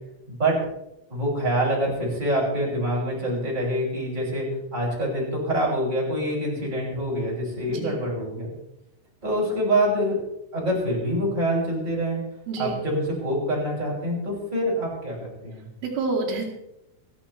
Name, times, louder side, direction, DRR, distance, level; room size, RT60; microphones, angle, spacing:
voice 1, 0.3-0.6 1.1-4.5 4.7-8.5 9.2-10.2 10.5-12.2 12.6-15.7, right 1 dB, 10° right, -4 dB, 5.6 m, -25 dB
voice 2, 12.5-12.8 15.8-16.5, right 3 dB, 90° right, -6 dB, 5.2 m, -28 dB
28.5 x 11.0 x 3.2 m, 0.86 s
omnidirectional pair, 5.6 m